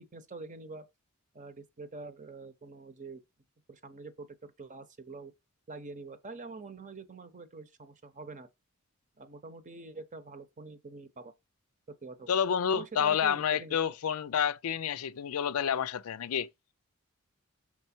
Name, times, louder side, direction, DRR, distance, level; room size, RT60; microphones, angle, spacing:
voice 1, 0.1-0.9 1.3-3.2 3.7-5.3 5.7-8.5 9.2-11.3 12.0-12.3 12.7-14.0, right 3 dB, 35° right, 0.9 m, -45 dB
voice 2, 12.3-16.5, left 8 dB, 80° left, 0.4 m, -29 dB
6.2 x 4.4 x 4.4 m
head